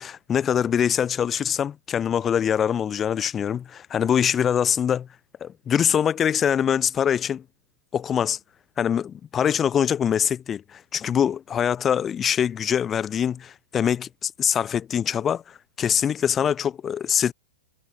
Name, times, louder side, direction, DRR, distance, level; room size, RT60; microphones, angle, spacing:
voice 1, 0.0-5.1 5.4-7.4 7.9-8.4 8.8-17.3, left 8 dB, 20° left, 0.4 m, -24 dB
hypercardioid pair, 135°, 0 cm